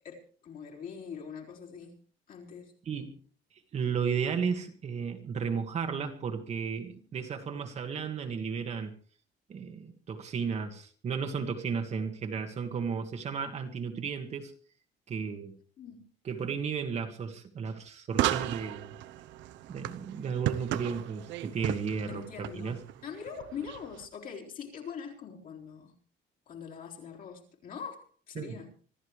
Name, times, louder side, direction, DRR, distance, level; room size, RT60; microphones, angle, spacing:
voice 1, 0.0-1.9 2.3-2.7 15.8-16.0 22.1-25.9 26.5-28.8, left 6 dB, 50° left, 4.1 m, -43 dB
voice 2, 2.8-3.2 3.7-8.9 9.5-14.5 15.1-15.5 16.2-18.9 19.7-22.2 22.5-22.8 28.3-28.6, right 6 dB, 35° right, 1.7 m, -34 dB
sound 1, 18.1-24.1, right 13 dB, 80° right, 0.8 m, -35 dB
25.5 x 14.0 x 3.3 m
cardioid pair, 170°, 19 cm